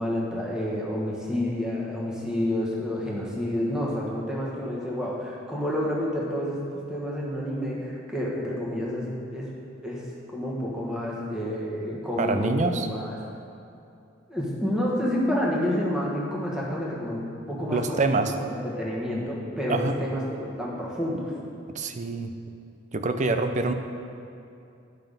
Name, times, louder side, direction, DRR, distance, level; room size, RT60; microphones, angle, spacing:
voice 1, 0.0-6.6 6.9-9.5 9.8-10.0 10.3-13.1 14.3-21.3, left 1 dB, 5° right, -5 dB, 1.5 m, -29 dB
voice 2, 12.2-12.9 17.7-18.3 19.7-20.0 21.7-22.3 22.9-23.7, right 3 dB, 40° right, 8 dB, 0.5 m, -25 dB
10.5 x 5.8 x 5.2 m, 2.6 s
head